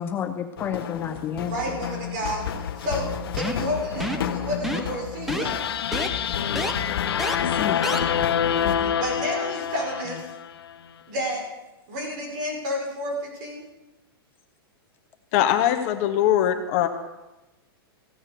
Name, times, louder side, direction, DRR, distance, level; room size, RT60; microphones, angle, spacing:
voice 1, 0.0-1.8 7.4-7.9, left 8 dB, 15° left, 7 dB, 0.5 m, -31 dB
sound 1, 0.6-8.8, left 8 dB, 70° left, 1.3 m, -32 dB
voice 2, 1.4-3.1 3.3-5.6 7.7-8.2 8.7-10.3 11.1-11.4 11.9-13.6, equal, 50° right, 0 dB, 5.6 m, -31 dB
sound 2, 3.4-3.7 4.0-4.3 4.6-5.0 5.3-5.5 5.9-6.1 6.6-6.7 7.2-7.4 7.8-8.0, equal, ahead, 0.9 m, -28 dB
sound 3, 5.4-10.7, left 8 dB, 85° left, 0.8 m, -26 dB
voice 3, 8.6-8.9 15.3-16.9, left 11 dB, 40° left, 6 dB, 1.2 m, -22 dB
15.5 x 8.7 x 6.9 m, 1.0 s
hypercardioid pair, 155°, 13 cm